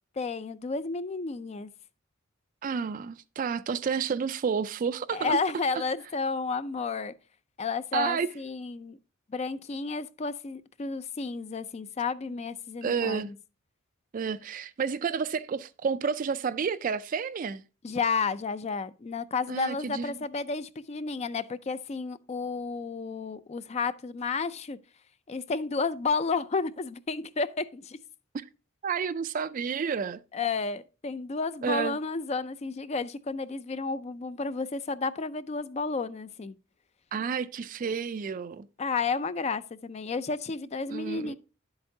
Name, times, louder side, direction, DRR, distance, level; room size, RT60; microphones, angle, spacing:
voice 1, 0.2-1.7 5.1-7.1 7.6-9.0 9.3-13.2 17.8-24.8 25.3-28.0 30.3-36.6 38.8-41.3, left 4 dB, 30° left, 0.4 m, -31 dB
voice 2, 2.6-5.4 5.7-5.8 7.9-8.3 12.8-13.3 14.1-17.6 19.5-20.1 28.3-28.5 28.8-30.2 31.6-32.0 37.1-38.7 40.9-41.3, right 6 dB, 40° right, 0.3 m, -30 dB
10.0 x 7.9 x 2.7 m
head